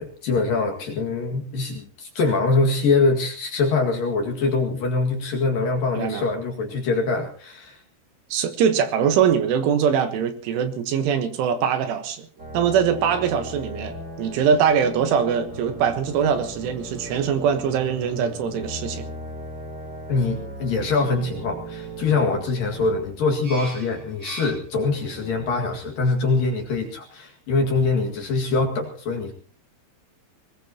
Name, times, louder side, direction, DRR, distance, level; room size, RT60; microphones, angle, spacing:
voice 1, 0.0-7.8 20.1-29.3, left 3 dB, 55° left, 2 dB, 3.0 m, -23 dB
voice 2, 8.3-12.3 12.5-19.1, right 7 dB, 75° right, 8 dB, 3.6 m, -22 dB
sound 1, 12.4-25.7, right 1 dB, 25° right, 2.6 m, -37 dB
22.5 x 19.5 x 2.9 m, 0.41 s
omnidirectional pair, 6.0 m